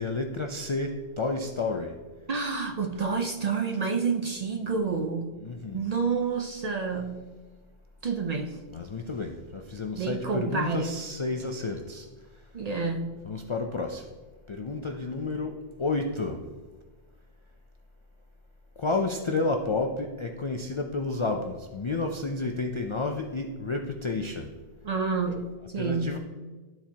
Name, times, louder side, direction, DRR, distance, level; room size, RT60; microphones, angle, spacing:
voice 1, 0.0-2.0 5.4-5.8 8.7-12.1 13.3-14.0 14.5-16.4 18.8-24.5 25.8-26.2, left 3 dB, 50° left, 3 dB, 0.3 m, -31 dB
voice 2, 2.3-5.4 5.7-7.2 8.0-8.6 9.9-11.0 12.5-13.2 24.8-26.2, right 5 dB, 50° right, 4 dB, 0.5 m, -29 dB
12.5 x 4.4 x 2.8 m, 1.3 s
omnidirectional pair, 1.1 m